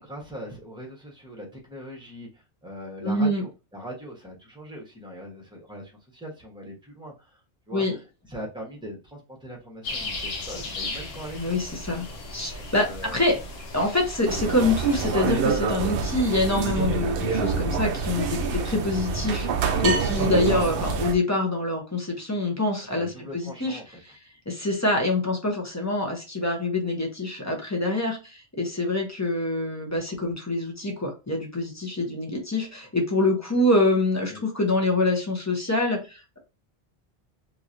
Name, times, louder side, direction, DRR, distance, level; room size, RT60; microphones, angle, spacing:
voice 1, 0.0-7.4 7.7-8.0 8.3-11.7 12.6-13.3 18.4-18.9 22.9-23.8 34.3-34.4, equal, 5° right, -2 dB, 1.0 m, -41 dB
voice 2, 3.0-3.4 7.7-7.9 11.4-12.0 12.3-13.4 13.7-18.4 18.6-23.1 23.3-23.8 24.5-36.4, left 2 dB, 20° left, 0 dB, 0.7 m, -25 dB
sound 1, 9.8-15.1, left 2 dB, 65° left, 0.9 m, -36 dB
sound 2, 14.3-21.2, right 5 dB, 60° right, 0.7 m, -26 dB
3.0 x 2.8 x 2.5 m, 0.30 s
omnidirectional pair, 1.2 m